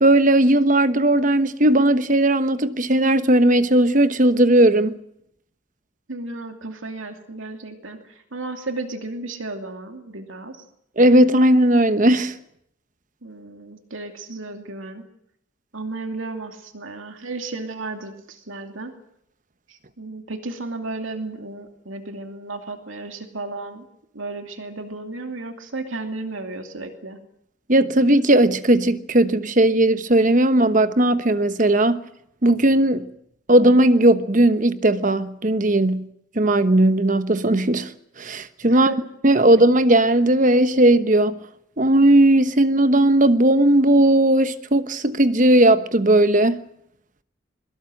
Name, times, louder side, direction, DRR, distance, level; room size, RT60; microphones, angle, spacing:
voice 1, 0.0-5.0 11.0-12.4 27.7-32.0 32.4-33.1 33.5-36.1 36.3-37.9 38.2-39.0 39.2-41.4 41.8-46.6, right 1 dB, 40° right, 1.1 m, -17 dB
voice 2, 6.1-10.6 13.2-15.0 15.7-18.9 19.7-23.8 24.1-27.2 38.6-39.0, right 2 dB, 85° right, 2.6 m, -34 dB
22.5 x 21.0 x 7.8 m
head